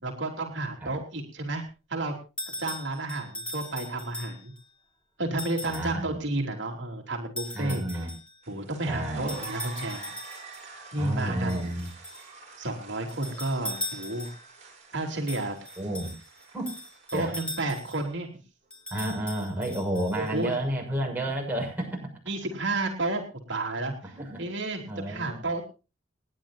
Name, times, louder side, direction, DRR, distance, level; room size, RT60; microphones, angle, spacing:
voice 1, 0.0-1.6 1.9-2.1 2.6-4.5 5.2-8.0 8.5-10.1 10.9-11.7 12.6-14.3 14.9-15.6 17.1-18.3 20.1-20.5 22.3-23.2 23.5-25.6, right 2 dB, 65° right, 1 dB, 3.3 m, -31 dB
sound 1, 2.4-4.6 5.4-6.0 7.4-8.4 9.3-10.7 11.5-12.3 13.1-14.5 15.3-18.1 18.7-20.5, left 1 dB, 5° left, 3.8 m, -39 dB
voice 2, 5.6-6.2 7.5-8.1 8.9-9.3 11.0-11.9 15.8-16.1 16.5-16.7 17.1-17.4 18.9-22.1 24.0-24.4 24.9-25.5, right 1 dB, 10° right, -2 dB, 6.3 m, -31 dB
sound 2, 8.4-17.8, right 4 dB, 35° right, 7.5 m, -46 dB
29.5 x 10.5 x 2.7 m, 0.32 s
head